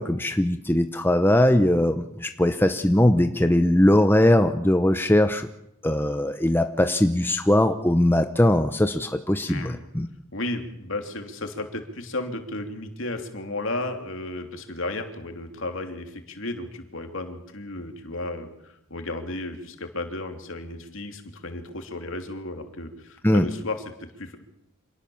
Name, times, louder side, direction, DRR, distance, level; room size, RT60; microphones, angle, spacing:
voice 1, 0.0-5.5 5.8-10.1 23.2-23.5, left 1 dB, 10° left, 8 dB, 0.8 m, -20 dB
voice 2, 9.5-9.8 10.3-24.4, left 2 dB, 60° left, 5 dB, 3.0 m, -34 dB
26.5 x 18.5 x 7.2 m, 0.81 s
head